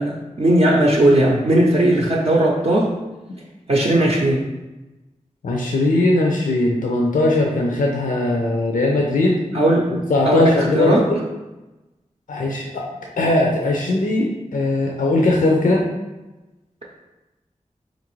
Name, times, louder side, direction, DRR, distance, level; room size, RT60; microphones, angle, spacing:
voice 1, 0.0-2.9 3.7-4.4 9.5-9.9 10.2-11.0, right 1 dB, 50° right, -5 dB, 0.6 m, -17 dB
voice 2, 5.4-9.4 10.1-11.2 12.3-12.8 13.2-15.9, left 2 dB, 85° left, -1 dB, 0.4 m, -19 dB
4.0 x 2.5 x 3.0 m, 1.1 s
wide cardioid pair, 45°, 13 cm